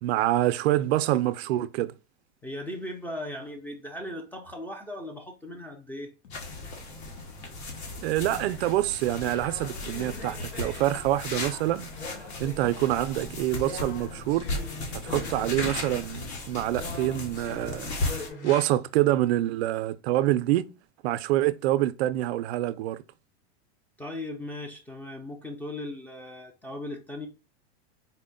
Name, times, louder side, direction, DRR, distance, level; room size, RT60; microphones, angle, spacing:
voice 1, 0.0-1.9 8.0-14.5 15.0-17.9 18.4-20.7 21.0-23.0, right 14 dB, 65° right, 0.5 m, -26 dB
voice 2, 2.4-6.1 24.0-27.3, left 1 dB, 5° left, 0.4 m, -38 dB
sound 1, 6.2-11.2, left 5 dB, 50° left, 1.0 m, -50 dB
sound 2, 6.3-18.3, left 2 dB, 65° left, 1.4 m, -36 dB
sound 3, 9.3-16.2 16.7-18.7, left 3 dB, 85° left, 1.3 m, -42 dB
4.2 x 2.1 x 3.7 m
supercardioid pair, 130°, 34 cm